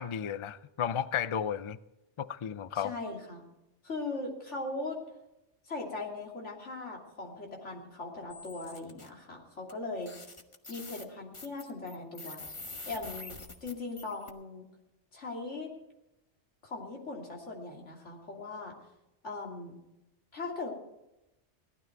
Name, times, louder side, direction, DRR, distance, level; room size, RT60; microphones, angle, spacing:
voice 1, 0.0-1.8 2.2-2.9, left 8 dB, 55° left, 16 dB, 0.3 m, -33 dB
voice 2, 2.7-3.4 3.8-5.0 5.6-10.2 10.7-12.4 12.9-14.7 15.1-15.7 16.6-18.7 19.2-19.7 20.3-20.7, left 3 dB, 80° left, 0 dB, 3.1 m, -39 dB
sound 1, 8.3-9.1 9.7-9.8 10.0-14.3, left 3 dB, 25° left, 1.1 m, -46 dB
17.5 x 12.5 x 4.6 m, 0.92 s
omnidirectional pair, 1.2 m